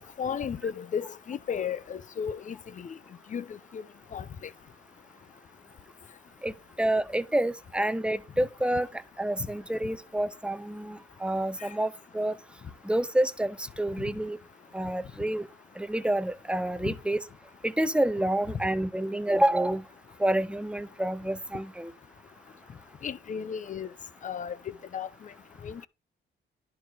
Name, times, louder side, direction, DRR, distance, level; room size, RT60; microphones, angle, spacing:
voice 1, 0.2-2.9 3.3-3.4 3.7-3.8 4.1-4.2 16.9-17.0 23.0-23.9 24.2-24.6 24.9-25.1 25.6-25.9, left 7 dB, 40° left, 0.6 m, -34 dB
voice 2, 6.4-8.9 9.2-12.3 12.8-14.4 14.7-15.5 15.8-17.2 17.6-19.8 20.2-21.9, right 1 dB, 5° right, 0.6 m, -28 dB
10.5 x 4.8 x 3.9 m
cardioid pair, 90°, 20 cm